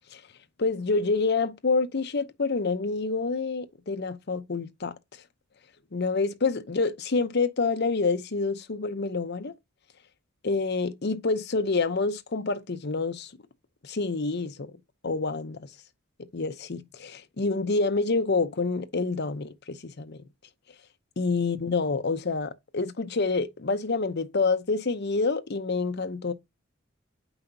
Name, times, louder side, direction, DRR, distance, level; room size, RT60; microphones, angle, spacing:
voice 1, 0.6-4.9 5.9-9.5 10.4-13.3 13.8-14.7 15.0-15.7 16.3-20.2 21.2-26.3, left 3 dB, 55° left, 0.7 m, -27 dB
7.8 x 5.6 x 2.7 m
head